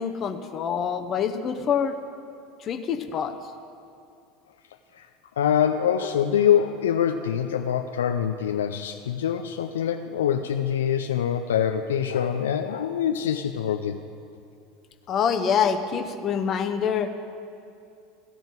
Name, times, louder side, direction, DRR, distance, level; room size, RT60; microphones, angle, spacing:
voice 1, 0.0-2.0 2.6-3.3 15.1-17.1, left 7 dB, 40° left, 8 dB, 0.8 m, -25 dB
voice 2, 5.4-14.0, left 9 dB, 75° left, 6 dB, 0.4 m, -24 dB
15.0 x 5.1 x 7.8 m, 2.5 s
figure-of-eight pair, 75°, 0 cm